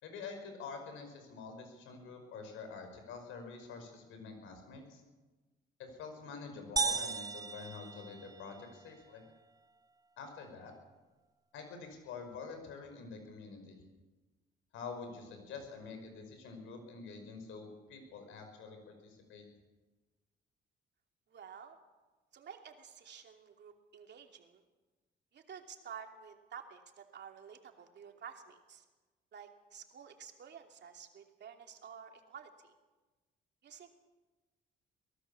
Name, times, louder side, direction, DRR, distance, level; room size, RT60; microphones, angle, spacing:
voice 1, 0.0-5.0 5.8-9.2 10.2-10.7 11.5-13.8 14.7-19.4, left 5 dB, 90° left, 6 dB, 5.6 m, -47 dB
sound 1, 6.8-8.7, right 4 dB, 20° right, 0.7 m, -36 dB
voice 2, 21.3-21.8 22.3-24.6 25.3-28.8 29.3-32.7 33.6-33.9, right 7 dB, 60° right, 4 dB, 2.9 m, -51 dB
23.5 x 18.0 x 7.1 m, 1.2 s
cardioid pair, 90°, 20 cm